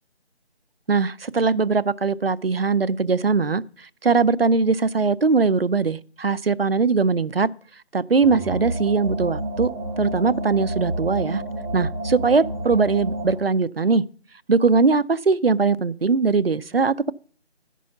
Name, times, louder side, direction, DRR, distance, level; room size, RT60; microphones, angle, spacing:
voice 1, 0.9-7.5 7.9-9.7 10.0-11.4 11.7-14.0 14.5-17.1, right 4 dB, 60° right, 0.5 m, -21 dB
sound 1, 8.2-13.5, right 1 dB, 30° right, 1.8 m, -29 dB
10.5 x 6.2 x 6.7 m
figure-of-eight pair, 165°, 34 cm